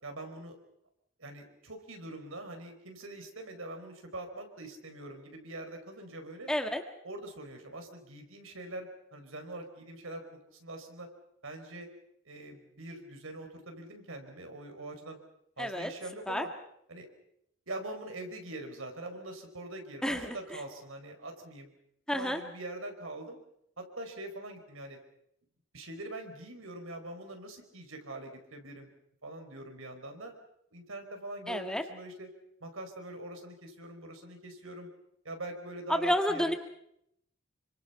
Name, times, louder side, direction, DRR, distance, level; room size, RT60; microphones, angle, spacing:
voice 1, 0.0-0.6 1.2-6.5 7.0-11.1 11.4-11.9 12.2-15.2 15.6-16.5 16.9-17.1 17.7-21.7 22.1-23.4 23.8-25.0 25.7-28.9 29.2-30.3 30.7-32.3 32.6-34.9 35.2-36.5, right 2 dB, 85° right, 5 dB, 4.7 m, -43 dB
voice 2, 6.5-6.8 15.6-15.9 16.3-16.5 20.0-20.4 22.1-22.4 31.5-31.8 35.9-36.5, left 1 dB, 5° left, 5 dB, 1.6 m, -30 dB
27.5 x 25.5 x 5.8 m, 0.75 s
head